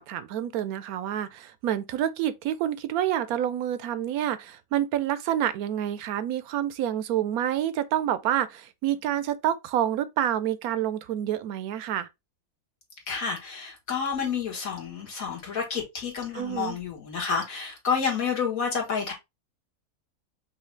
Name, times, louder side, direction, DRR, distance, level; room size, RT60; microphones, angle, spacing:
voice 1, 0.0-12.1 16.3-16.8, right 11 dB, 75° right, 1.0 m, -28 dB
voice 2, 13.1-19.1, left 6 dB, 65° left, 2.0 m, -29 dB
5.6 x 2.7 x 3.2 m
omnidirectional pair, 1.6 m